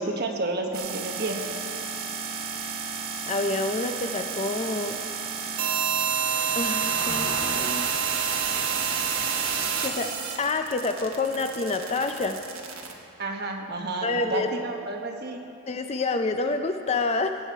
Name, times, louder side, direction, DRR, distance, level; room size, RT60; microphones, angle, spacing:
voice 1, 0.0-1.4 13.2-15.4, right 2 dB, 45° right, 2 dB, 1.1 m, -30 dB
sound 1, 0.7-12.9, right 6 dB, 65° right, 1.2 m, -29 dB
voice 2, 3.3-5.0 6.5-7.9 9.8-10.1 10.4-12.4 14.0-14.5 15.7-17.4, left 3 dB, 30° left, 7 dB, 0.4 m, -28 dB
Car passing by, 4.2-13.0 13.4-13.6, right 1 dB, 30° right, 2.0 m, -44 dB
16.5 x 8.5 x 4.6 m, 2.5 s
head